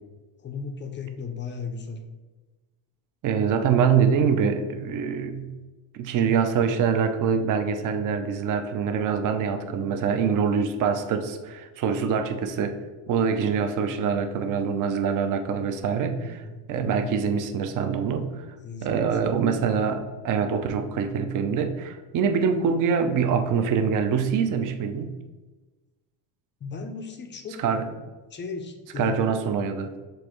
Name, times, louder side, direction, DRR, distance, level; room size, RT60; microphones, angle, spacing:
voice 1, 0.4-2.0 16.2-17.1 18.6-19.2 26.6-27.6 28.3-29.2, left 5 dB, 25° left, 4 dB, 0.4 m, -36 dB
voice 2, 3.2-5.5 5.9-12.8 13.1-16.4 16.7-18.5 18.8-25.1 27.6-27.9 29.0-29.9, right 6 dB, 45° right, 7 dB, 0.5 m, -24 dB
6.4 x 2.6 x 3.0 m, 1.2 s
cardioid pair, 115°, 47 cm